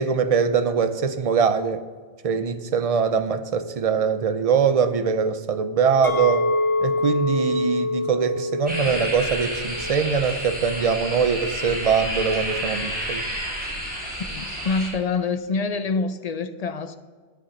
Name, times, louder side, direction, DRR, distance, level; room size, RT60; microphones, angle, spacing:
voice 1, 0.0-1.8 2.2-6.5 6.8-13.3, right 6 dB, 40° right, 0.6 m, -22 dB
Chink clink, 6.0-11.2, left 2 dB, 20° left, 1.4 m, -26 dB
sound 1, 8.7-14.9, equal, 10° right, 3.6 m, -30 dB
voice 2, 14.3-17.0, left 4 dB, 45° left, 0.6 m, -26 dB
10.5 x 8.4 x 5.2 m
omnidirectional pair, 1.1 m